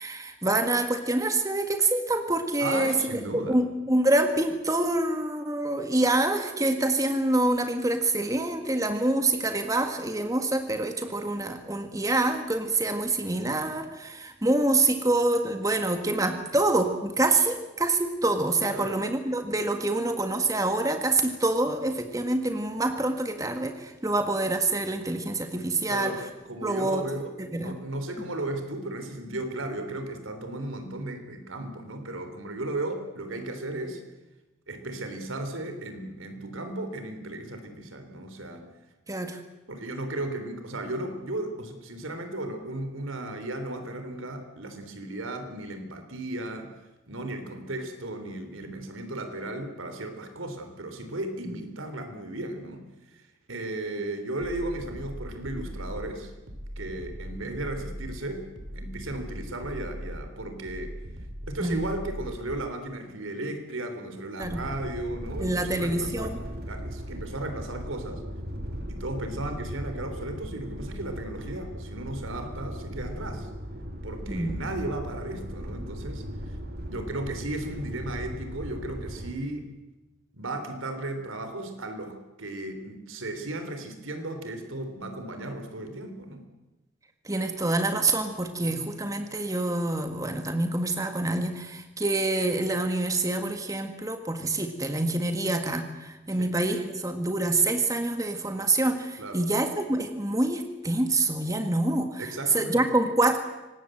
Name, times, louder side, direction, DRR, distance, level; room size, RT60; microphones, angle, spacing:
voice 1, 0.0-3.0 3.5-26.2 26.6-27.0 27.4-27.8 39.1-39.4 51.5-51.6 61.6-61.9 64.4-64.6 65.4-66.4 74.3-74.6 87.2-103.4, right 2 dB, 15° right, 7 dB, 1.7 m, -26 dB
voice 2, 2.6-3.6 18.6-19.0 25.9-34.0 34.7-38.6 39.7-46.7 47.1-53.2 53.5-56.3 56.8-61.0 61.5-66.3 66.7-68.2 68.9-73.5 74.0-76.2 76.8-79.7 80.3-86.5 88.6-88.9 96.4-96.5 99.2-99.5 102.2-102.9, right 1 dB, 90° right, 7 dB, 3.7 m, -35 dB
sound 1, 54.4-62.7, equal, 70° right, 3.2 m, -40 dB
sound 2, 64.4-79.3, equal, 50° right, 2.5 m, -38 dB
24.5 x 19.0 x 7.9 m, 1.0 s
head